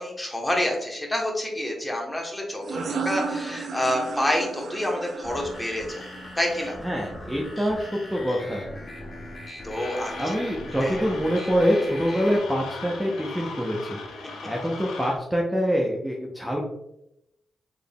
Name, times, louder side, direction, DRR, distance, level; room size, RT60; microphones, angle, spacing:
voice 1, 0.0-6.0 6.4-6.8 9.6-10.3 10.8-11.0, left 1 dB, 15° left, 0 dB, 1.1 m, -28 dB
sound 1, 2.6-8.0, right 4 dB, 70° right, 0.4 m, -35 dB
sound 2, 5.2-12.4, left 1 dB, 40° left, 1.2 m, -40 dB
voice 2, 6.8-8.6 10.2-14.0 14.4-16.6, equal, 10° right, -2 dB, 0.7 m, -25 dB
sound 3, 9.8-15.2, left 4 dB, 85° left, 0.5 m, -39 dB
3.7 x 3.5 x 2.3 m, 0.82 s
supercardioid pair, 50°, 0 cm